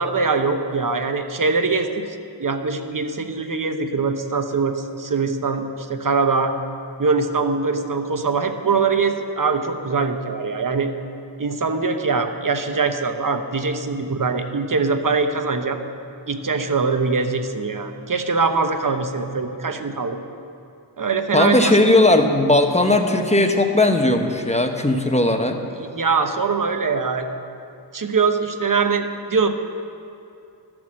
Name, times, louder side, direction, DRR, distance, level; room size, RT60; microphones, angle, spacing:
voice 1, 0.0-6.6 7.0-10.9 11.4-15.8 16.3-20.2 21.0-21.8 25.8-27.3 27.9-29.5, right 4 dB, 50° right, 7 dB, 1.0 m, -22 dB
voice 2, 21.3-25.5, left 2 dB, 15° left, 5 dB, 1.0 m, -17 dB
13.0 x 6.2 x 7.5 m, 2.6 s
wide cardioid pair, 55°, 43 cm